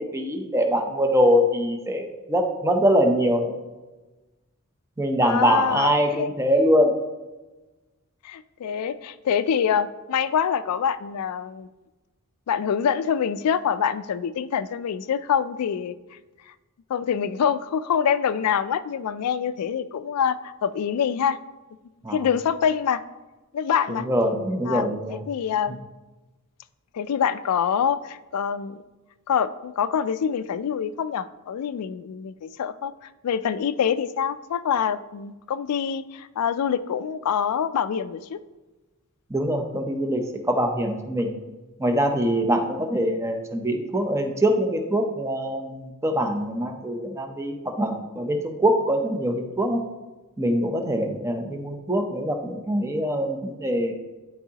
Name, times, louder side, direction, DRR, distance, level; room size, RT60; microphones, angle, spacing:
voice 1, 0.0-3.5 5.0-7.0 22.0-22.2 23.9-25.2 39.3-41.3 41.8-49.8 50.4-53.9, equal, 15° right, 4 dB, 0.6 m, -23 dB
voice 2, 5.2-6.6 8.2-11.7 12.5-16.0 16.9-21.4 22.1-23.0 23.5-24.1 24.7-24.9 25.3-25.8 26.9-28.8 29.3-32.9 33.2-38.4, left 7 dB, 90° left, 13 dB, 0.4 m, -25 dB
11.0 x 4.6 x 2.8 m, 1.1 s
head